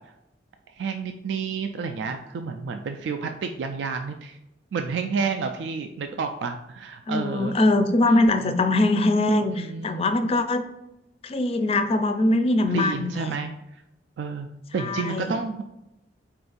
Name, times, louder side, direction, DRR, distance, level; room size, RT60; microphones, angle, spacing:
voice 1, 0.8-4.4 4.7-7.5 8.1-8.3 9.5-10.0 12.7-13.5 14.2-14.5 14.7-15.6, right 5 dB, 85° right, 6 dB, 0.3 m, -30 dB
voice 2, 7.1-10.6 11.2-13.4 14.8-15.3, left 2 dB, 35° left, 8 dB, 0.4 m, -22 dB
4.3 x 2.5 x 3.9 m, 0.89 s
head